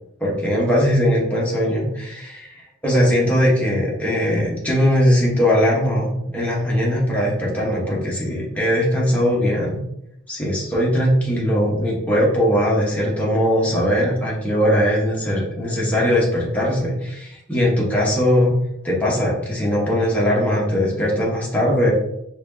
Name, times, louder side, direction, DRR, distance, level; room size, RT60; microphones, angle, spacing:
voice 1, 0.2-2.5 2.8-9.8 10.3-18.5 18.8-21.9, equal, 5° left, -6 dB, 1.2 m, -20 dB
4.4 x 2.9 x 2.7 m, 0.82 s
head